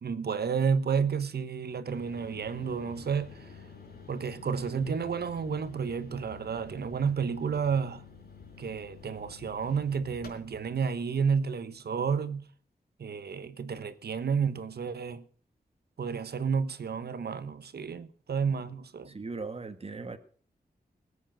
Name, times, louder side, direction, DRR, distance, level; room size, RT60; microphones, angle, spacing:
voice 1, 0.0-3.5 4.1-8.0 8.6-12.5 13.0-15.2 16.0-19.2, right 6 dB, 80° right, 1.2 m, -31 dB
sound 1, 1.9-10.8, left 5 dB, 75° left, 5.2 m, -49 dB
voice 2, 19.1-20.2, right 3 dB, 35° right, 1.7 m, -38 dB
19.5 x 8.6 x 6.5 m
wide cardioid pair, 105°, 16 cm